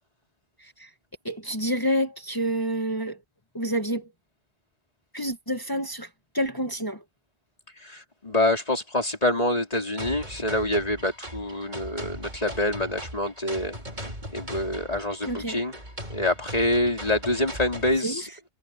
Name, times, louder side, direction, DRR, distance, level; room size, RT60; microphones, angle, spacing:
voice 1, 0.6-0.9 1.2-3.2 3.5-4.1 5.1-7.0 15.2-15.6 18.0-18.2, equal, 20° left, 1.5 m, -28 dB
voice 2, 7.8-13.8 14.3-15.8 16.1-18.3, left 1 dB, 35° left, 4.0 m, -26 dB
sound 1, 10.0-18.0, equal, 45° right, 4.8 m, -39 dB
omnidirectional pair, 1.1 m